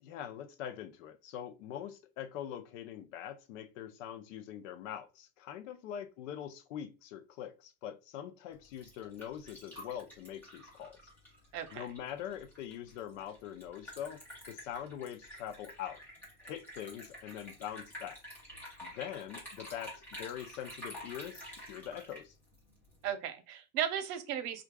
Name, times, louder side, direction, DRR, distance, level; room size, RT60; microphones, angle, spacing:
voice 1, 0.0-11.0 11.7-16.0 16.4-18.2 18.8-22.3, left 10 dB, 55° left, 0.6 m, -43 dB
Liquid, 8.5-23.1, equal, 5° left, 0.4 m, -50 dB
voice 2, 11.5-11.9 23.0-24.6, right 9 dB, 80° right, 0.9 m, -35 dB
4.6 x 2.4 x 2.2 m
supercardioid pair, 175°, 47 cm